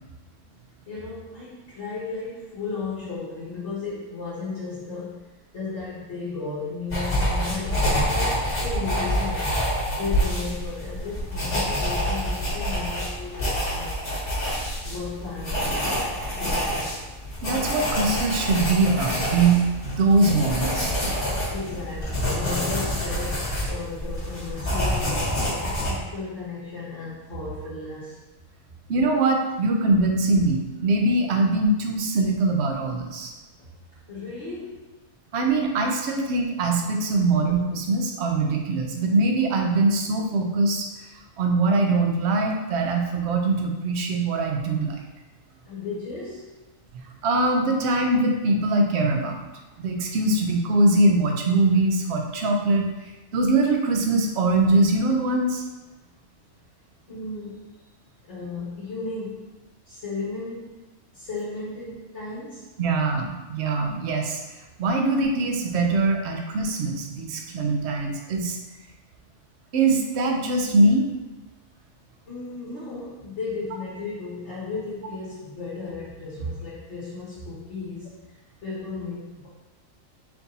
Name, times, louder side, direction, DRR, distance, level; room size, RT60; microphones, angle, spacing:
voice 1, 0.9-5.2 5.5-9.6 9.9-14.3 14.8-15.9 16.3-17.0 21.5-28.2 33.6-33.7 34.1-34.9 45.6-46.6 57.1-57.8 58.3-59.5 59.8-60.8 61.1-62.7 72.3-79.5, left 3 dB, 60° left, -10 dB, 1.4 m, -35 dB
sound 1, 6.9-25.9, equal, 40° left, 1.6 m, -27 dB
voice 2, 17.4-20.9 28.9-33.3 35.3-40.9 41.4-45.0 47.2-49.4 49.8-55.6 62.8-68.6 69.7-71.1, right 2 dB, 60° right, 2 dB, 0.8 m, -22 dB
4.5 x 2.7 x 4.0 m, 1.1 s
omnidirectional pair, 1.4 m